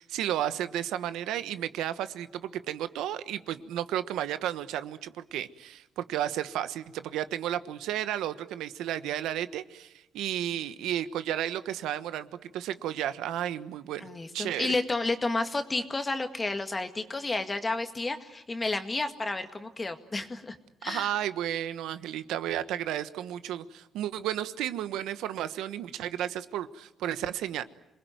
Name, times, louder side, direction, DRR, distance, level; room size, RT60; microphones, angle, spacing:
voice 1, 0.0-14.8 20.9-27.6, right 11 dB, 90° right, 12 dB, 1.2 m, -33 dB
voice 2, 14.0-20.6 20.8-21.1, left 3 dB, 25° left, 6 dB, 2.0 m, -31 dB
27.0 x 20.5 x 9.4 m, 0.93 s
cardioid pair, 90°, 0 cm